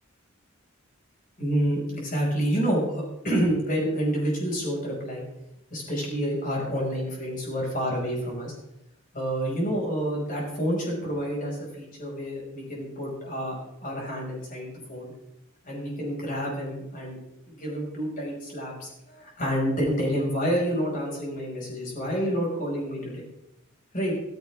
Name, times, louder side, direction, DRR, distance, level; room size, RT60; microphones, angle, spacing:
voice 1, 1.4-5.3 5.7-8.5 9.1-13.6 13.8-15.1 15.6-17.2 17.5-23.2 23.9-24.1, equal, 40° left, -2 dB, 6.3 m, -28 dB
15.5 x 15.0 x 3.7 m, 0.85 s
head